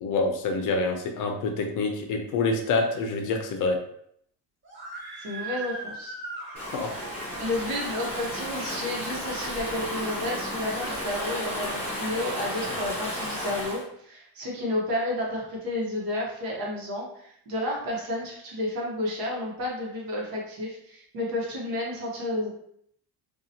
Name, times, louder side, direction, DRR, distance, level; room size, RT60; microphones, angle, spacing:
voice 1, 0.0-3.8 6.7-6.9, left 3 dB, 55° left, 4 dB, 0.5 m, -26 dB
Screaming, 4.6-7.4, right 3 dB, 30° right, 0.6 m, -39 dB
voice 2, 5.2-6.1 6.5-6.7 7.4-22.5, left 1 dB, 65° right, -2 dB, 1.0 m, -31 dB
Stream / Ocean, 6.6-13.8, equal, 5° left, 1.4 m, -33 dB
2.7 x 2.3 x 2.7 m, 0.70 s
cardioid pair, 150°, 38 cm